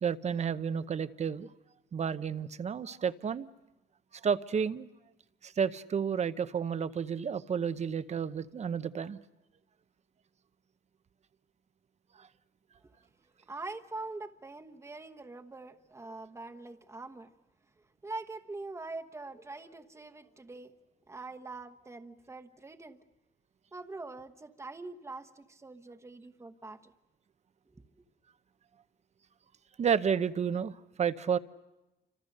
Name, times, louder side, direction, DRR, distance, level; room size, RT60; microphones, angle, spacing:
voice 1, 0.0-1.5 1.9-3.5 4.2-4.9 5.4-9.2 12.2-12.3 29.8-31.4, right 7 dB, 40° right, 0.8 m, -31 dB
voice 2, 13.5-17.3 18.0-20.7 21.1-23.0 23.7-26.9 27.7-27.8, right 3 dB, 15° right, 1.1 m, -44 dB
28.5 x 26.0 x 6.6 m
cardioid pair, 130°, 18 cm